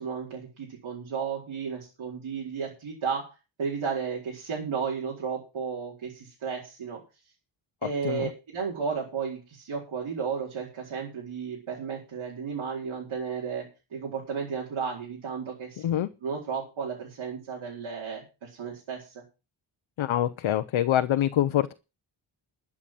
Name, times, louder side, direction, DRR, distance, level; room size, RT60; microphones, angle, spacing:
voice 1, 0.0-3.3 3.6-7.0 7.8-13.7 13.9-15.8 16.2-19.2, right 6 dB, 80° right, -3 dB, 4.7 m, -33 dB
voice 2, 7.8-8.3 15.8-16.1 20.0-21.7, left 11 dB, 75° left, 10 dB, 0.9 m, -25 dB
12.5 x 7.3 x 7.6 m, 0.31 s
cardioid pair, 85°, 47 cm